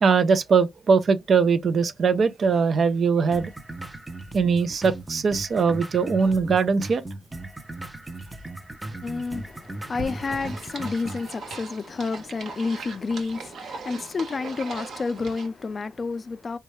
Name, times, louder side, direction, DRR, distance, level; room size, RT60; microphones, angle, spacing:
voice 1, 0.0-3.5 4.3-7.0, right 5 dB, 60° right, 0.5 m, -21 dB
sound 1, 3.3-11.3, right 1 dB, 20° right, 0.6 m, -38 dB
voice 2, 9.0-16.6, left 4 dB, 45° left, 0.4 m, -30 dB
sound 2, 10.0-15.5, right 4 dB, 80° right, 1.0 m, -39 dB
4.2 x 2.3 x 3.1 m
cardioid pair, 70°, 0 cm